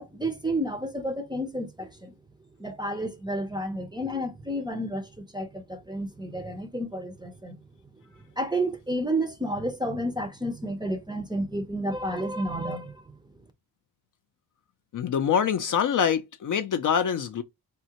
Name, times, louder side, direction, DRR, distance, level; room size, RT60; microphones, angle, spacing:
voice 1, 0.0-2.1 2.6-7.6 8.3-13.2, right 1 dB, 10° right, 0.5 m, -31 dB
voice 2, 14.9-17.4, left 7 dB, 50° left, 0.4 m, -25 dB
3.6 x 2.1 x 2.8 m
cardioid pair, 95°, 42 cm